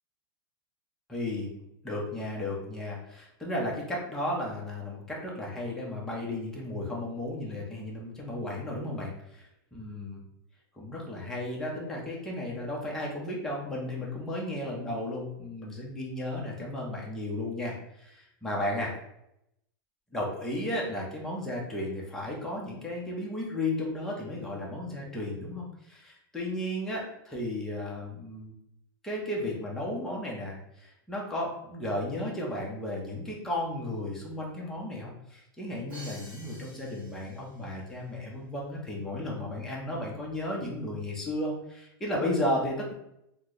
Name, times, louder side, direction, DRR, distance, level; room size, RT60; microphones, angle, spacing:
voice 1, 1.1-1.5 1.8-10.2 10.8-18.9 20.1-28.5 29.0-42.9, left 1 dB, 5° left, -4 dB, 0.6 m, -34 dB
Crash cymbal, 35.9-37.8, right 1 dB, 15° right, 1.1 m, -49 dB
2.8 x 2.0 x 3.6 m, 0.81 s
supercardioid pair, 150°, 12 cm